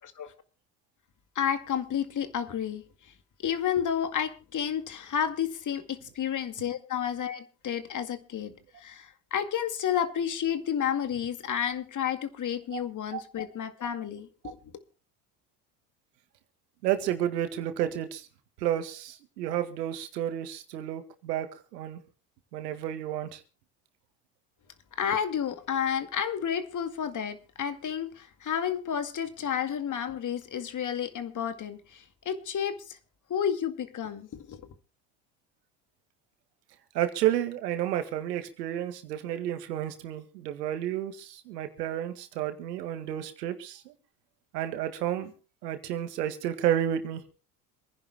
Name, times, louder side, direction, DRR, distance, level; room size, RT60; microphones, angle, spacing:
voice 1, 0.0-0.3 1.4-3.1 3.4-8.5 8.8-14.6 25.0-33.0 33.3-34.7, left 8 dB, 40° left, 2.1 m, -31 dB
voice 2, 16.8-18.3 18.6-21.5 21.7-22.0 22.5-23.4 36.9-43.9 44.5-45.3 45.6-47.2, right 11 dB, 80° right, 2.1 m, -31 dB
27.5 x 10.5 x 2.2 m
hypercardioid pair, 80°, 47 cm